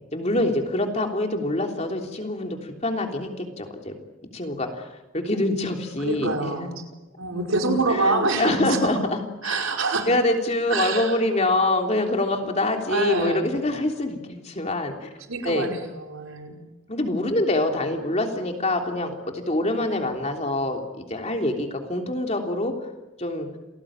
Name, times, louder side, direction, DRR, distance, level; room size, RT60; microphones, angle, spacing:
voice 1, 0.1-4.0 4.3-6.8 7.9-9.6 10.0-15.1 15.4-15.7 16.9-22.9 23.2-23.5, left 1 dB, 30° left, 3 dB, 3.4 m, -25 dB
voice 2, 6.0-6.8 7.2-9.0 9.4-10.1 10.7-11.2 12.9-13.5 15.3-16.6, right 3 dB, 85° right, 2 dB, 5.2 m, -26 dB
28.5 x 19.0 x 8.9 m, 1.0 s
head